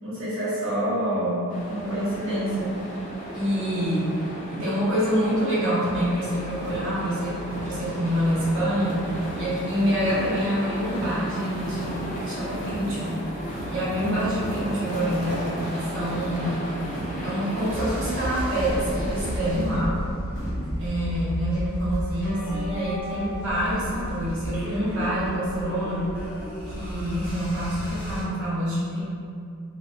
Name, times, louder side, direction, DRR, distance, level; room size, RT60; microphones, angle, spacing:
voice 1, 0.0-2.8 3.3-9.1 9.3-13.3 13.7-16.7 17.2-20.0 20.8-26.2 26.7-29.0, equal, 65° right, -10 dB, 0.9 m, -26 dB
sound 1, 1.5-19.5, equal, 35° left, 0.4 m, -35 dB
sound 2, 5.8-20.7, equal, 70° left, 0.8 m, -38 dB
sound 3, 17.7-28.2, equal, 10° right, 0.7 m, -33 dB
2.4 x 2.2 x 2.6 m, 2.4 s
head